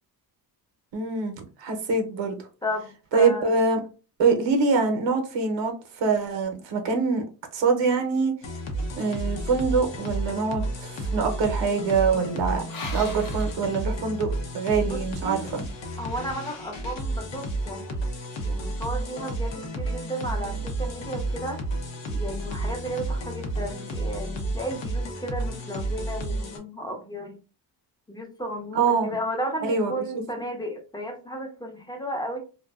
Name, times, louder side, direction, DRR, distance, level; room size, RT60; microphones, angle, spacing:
voice 1, 0.9-2.4 3.1-3.8 4.2-7.2 7.5-8.3 9.0-12.6 12.9-14.3 14.5-15.6 28.7-29.1 29.6-29.9, right 4 dB, 85° right, 0.7 m, -24 dB
voice 2, 2.6-3.5 14.9-15.5 16.0-18.0 18.4-21.6 22.1-27.4 28.1-32.4, equal, 10° left, 0.5 m, -34 dB
sound 1, 8.4-26.6, right 1 dB, 80° left, 0.7 m, -31 dB
sound 2, 10.1-14.5, left 3 dB, 50° left, 0.8 m, -43 dB
2.5 x 2.2 x 2.2 m
cardioid pair, 110°, 43 cm